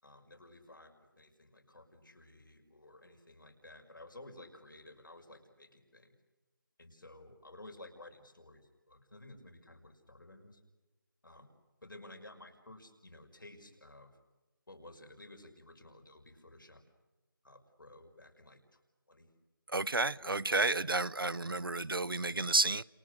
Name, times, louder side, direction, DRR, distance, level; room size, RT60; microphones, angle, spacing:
voice 1, 0.0-6.1 6.8-10.6 11.2-11.5 11.8-14.2 14.7-16.8 17.4-18.8 19.1-19.3 20.0-20.4 21.2-21.9, left 2 dB, 65° left, 5.8 m, -54 dB
voice 2, 19.7-22.8, right 3 dB, 75° right, 0.8 m, -31 dB
28.5 x 28.5 x 6.5 m
figure-of-eight pair, 175°, 12 cm